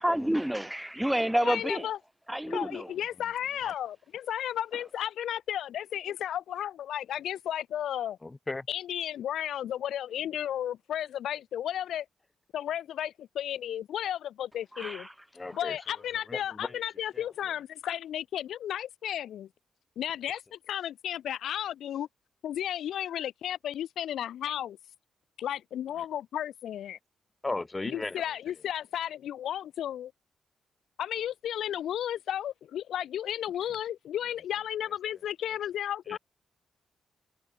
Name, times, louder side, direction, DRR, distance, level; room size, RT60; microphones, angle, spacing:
voice 1, 0.0-1.9 2.3-2.9 14.8-15.1, right 1 dB, 5° right, 1.9 m, -29 dB
voice 2, 1.4-2.0 2.5-8.2 8.7-12.1 12.5-15.1 15.5-19.5 20.0-22.1 22.4-24.8 25.4-27.0 27.8-30.1 31.0-36.2, left 10 dB, 80° left, 4.3 m, -33 dB
voice 3, 8.2-8.7 15.3-15.8 16.3-16.8 17.1-17.2 27.4-28.2 36.1-36.2, left 2 dB, 20° left, 4.2 m, -36 dB
cardioid pair, 105°, 0 cm